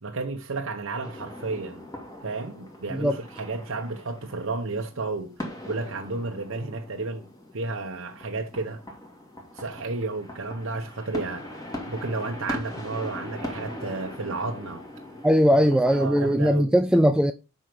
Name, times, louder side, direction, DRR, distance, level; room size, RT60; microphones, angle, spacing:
voice 1, 0.0-1.9 2.2-5.3 5.7-7.3 7.5-8.8 9.5-14.8 15.7-16.7, right 3 dB, 65° right, 1.0 m, -32 dB
sound 1, 1.0-16.3, left 1 dB, 15° left, 2.1 m, -40 dB
voice 2, 15.2-17.3, equal, 5° right, 0.3 m, -20 dB
7.7 x 5.5 x 5.1 m
head